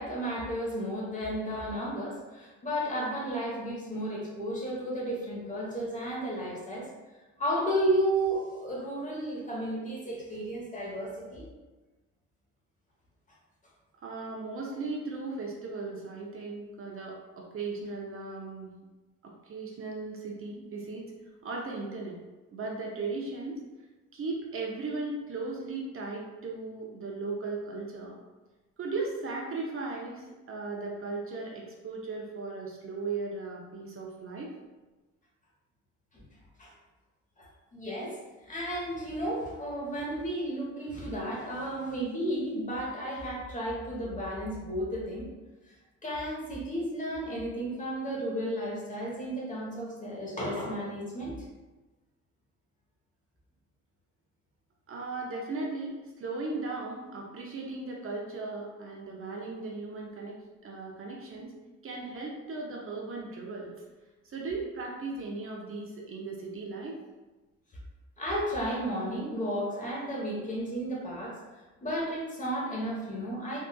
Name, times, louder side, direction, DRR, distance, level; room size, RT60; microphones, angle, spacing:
voice 1, 0.0-6.9 7.4-11.5 36.1-36.2 36.6-36.7 37.4-38.2 38.4-45.2 45.7-45.8 46.0-51.3 68.2-71.4 71.8-73.6, right 1 dB, 25° left, -4 dB, 1.1 m, -33 dB
voice 2, 14.0-18.7 19.2-21.1 21.4-22.2 22.5-23.6 24.1-28.2 28.8-34.5 54.9-60.4 60.6-61.5 61.8-63.7 64.2-66.9, right 3 dB, 45° right, -2 dB, 0.6 m, -37 dB
3.7 x 2.3 x 2.3 m, 1.2 s
cardioid pair, 90°, 30 cm